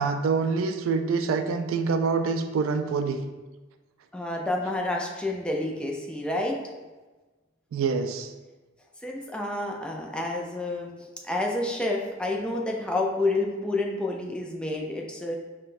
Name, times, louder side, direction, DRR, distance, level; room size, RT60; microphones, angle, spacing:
voice 1, 0.0-3.2 7.7-8.3, right 4 dB, 85° right, 7 dB, 0.3 m, -26 dB
voice 2, 4.1-6.6 9.0-15.4, left 2 dB, 5° left, -1 dB, 0.4 m, -29 dB
5.6 x 2.2 x 2.5 m, 1.2 s
head